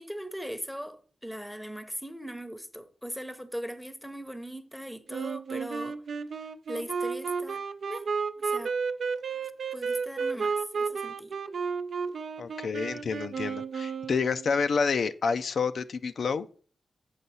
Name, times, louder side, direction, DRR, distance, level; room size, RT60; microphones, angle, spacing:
voice 1, 0.0-6.0 6.7-7.6 7.9-8.1 8.4-8.7 9.7-11.4, equal, ahead, 0.8 m, -39 dB
Wind instrument woodwind instrument, 5.1-14.6, right 5 dB, 75° right, 0.6 m, -32 dB
voice 2, 12.4-16.5, left 5 dB, 75° left, 0.4 m, -29 dB
8.1 x 5.4 x 4.1 m
wide cardioid pair, 100°, 0 cm